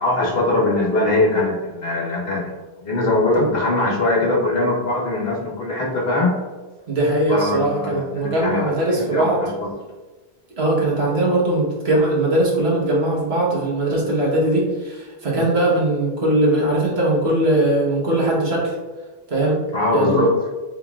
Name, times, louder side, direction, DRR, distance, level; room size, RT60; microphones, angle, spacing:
voice 1, 0.0-2.5 2.8-6.3 7.3-9.7 19.7-20.3, left 2 dB, 60° left, -3 dB, 1.2 m, -21 dB
voice 2, 6.9-9.4 10.6-18.7 19.3-19.6 19.9-20.3, right 1 dB, 70° right, -4 dB, 1.4 m, -20 dB
4.6 x 3.8 x 2.4 m, 1.3 s
omnidirectional pair, 1.1 m